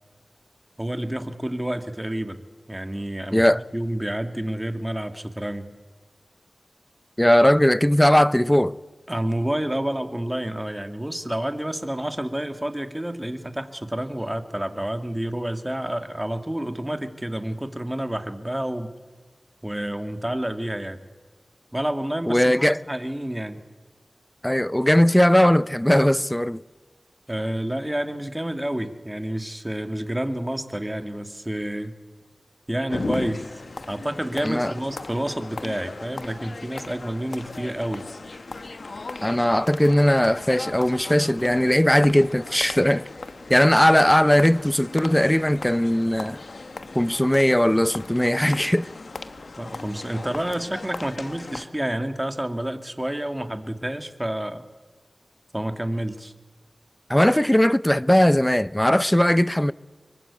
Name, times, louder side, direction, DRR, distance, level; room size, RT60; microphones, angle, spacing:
voice 1, 0.8-2.4 2.7-3.5 3.7-5.7 9.1-18.9 19.6-21.0 21.7-23.6 27.3-31.9 32.7-33.5 33.9-38.1 49.6-54.6 55.5-56.3, right 1 dB, 15° right, 2.1 m, -29 dB
voice 2, 3.3-3.6 7.2-8.7 22.3-22.8 24.4-26.6 34.4-34.7 39.2-43.0 43.5-46.4 46.9-48.9 57.1-59.7, left 1 dB, 10° left, 0.7 m, -19 dB
sound 1, 32.9-51.7, left 3 dB, 85° left, 1.3 m, -37 dB
24.5 x 22.5 x 8.4 m
wide cardioid pair, 50°, 0 cm